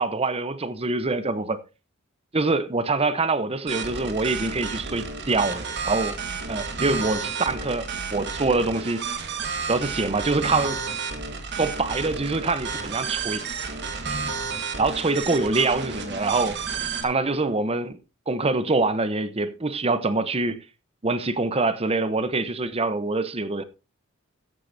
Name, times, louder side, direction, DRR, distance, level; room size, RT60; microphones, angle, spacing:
voice 1, 0.0-1.6 2.3-6.2 6.5-9.1 9.7-10.8 11.6-13.4 14.8-16.6 17.0-18.0 18.3-20.6 21.0-23.6, right 3 dB, 25° right, 0.8 m, -25 dB
sound 1, 3.7-17.0, right 5 dB, 50° right, 1.6 m, -31 dB
14.0 x 10.0 x 2.7 m
head